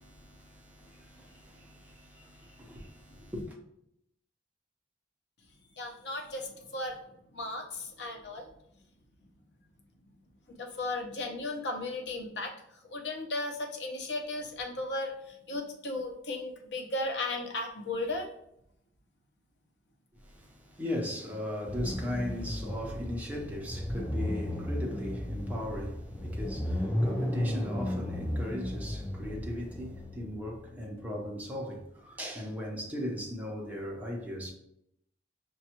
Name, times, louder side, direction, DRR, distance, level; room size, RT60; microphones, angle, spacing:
voice 1, 0.0-3.6 20.2-34.5, left 1 dB, 10° right, 0.7 m, -38 dB
voice 2, 5.8-7.0 7.3-8.5 10.6-12.5 12.9-18.3, left 2 dB, 80° left, 0.7 m, -35 dB
sound 1, 21.7-31.1, left 1 dB, 5° left, 0.3 m, -34 dB
5.3 x 2.3 x 2.9 m
head